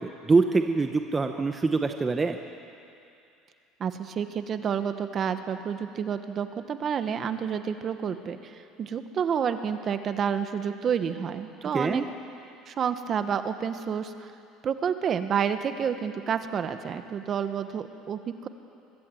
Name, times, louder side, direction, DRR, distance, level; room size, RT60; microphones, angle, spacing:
voice 1, 0.0-2.4 11.7-12.0, right 3 dB, 20° right, 6 dB, 0.9 m, -24 dB
voice 2, 3.8-12.0 12.7-14.3 14.6-18.5, right 7 dB, 40° right, 9 dB, 1.2 m, -29 dB
23.5 x 14.5 x 7.8 m, 2.6 s
supercardioid pair, 110°, 0 cm